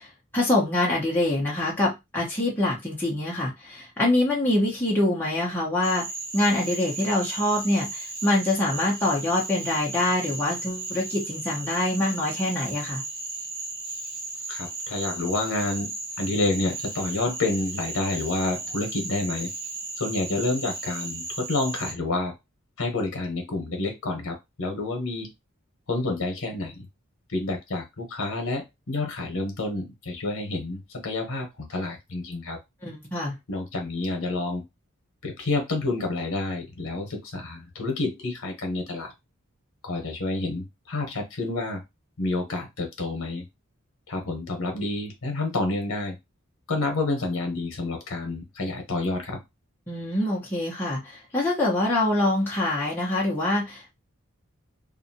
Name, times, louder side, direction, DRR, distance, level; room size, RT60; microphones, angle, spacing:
voice 1, 0.0-6.1 6.3-13.0 32.8-33.3 49.9-53.9, left 1 dB, 10° left, -5 dB, 0.9 m, -25 dB
Cricket / Frog, 5.8-21.9, right 3 dB, 45° right, 0.8 m, -35 dB
voice 2, 14.5-15.9 16.2-19.5 20.0-22.3 22.8-25.3 25.9-26.9 27.3-32.6 33.5-34.6 35.2-39.1 39.8-41.8 42.2-43.4 44.1-46.1 46.7-49.4, left 2 dB, 80° left, 3 dB, 0.9 m, -29 dB
2.7 x 2.4 x 2.7 m, 0.21 s
head